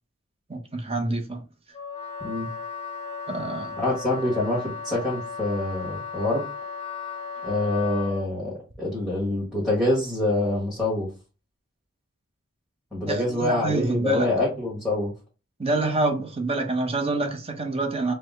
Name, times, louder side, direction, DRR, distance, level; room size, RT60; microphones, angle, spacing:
voice 1, 0.5-1.4 3.3-3.7 13.0-14.3 15.6-18.1, right 2 dB, 25° right, 0.8 m, -26 dB
Wind instrument woodwind instrument, 1.7-8.3, left 5 dB, 25° left, 0.7 m, -36 dB
voice 2, 3.8-6.4 7.4-11.1 12.9-15.1, left 2 dB, ahead, 1.4 m, -26 dB
4.8 x 2.1 x 3.6 m
head